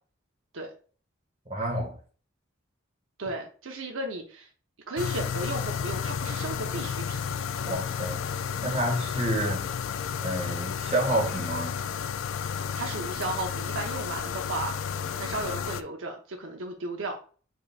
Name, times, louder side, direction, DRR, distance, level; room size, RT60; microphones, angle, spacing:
voice 1, 1.5-2.0 7.6-8.2 8.6-9.7 10.2-11.8, right 1 dB, 30° right, 1.7 m, -29 dB
voice 2, 3.2-4.5 4.9-7.2 7.7-7.8 12.7-17.2, right 2 dB, 80° right, 0.8 m, -35 dB
sound 1, 5.0-15.8, left 7 dB, 80° left, 0.4 m, -32 dB
5.2 x 4.0 x 2.4 m
head